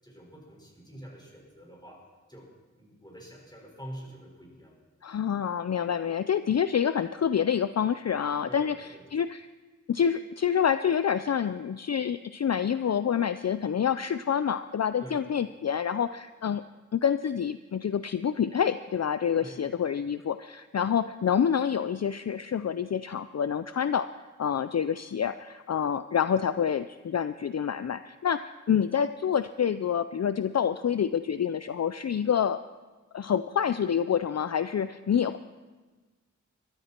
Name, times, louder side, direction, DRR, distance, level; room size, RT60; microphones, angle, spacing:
voice 1, 0.0-2.0 2.3-2.5 2.7-4.7 8.5-9.0 15.0-15.2 19.4-19.6, equal, 15° left, -2 dB, 5.5 m, -46 dB
voice 2, 5.0-8.7 9.1-9.5 9.9-16.6 16.9-24.1 24.4-32.6 33.1-35.4, left 8 dB, 55° left, 12 dB, 0.4 m, -27 dB
22.0 x 13.0 x 4.4 m, 1.3 s
wide cardioid pair, 60°, 31 cm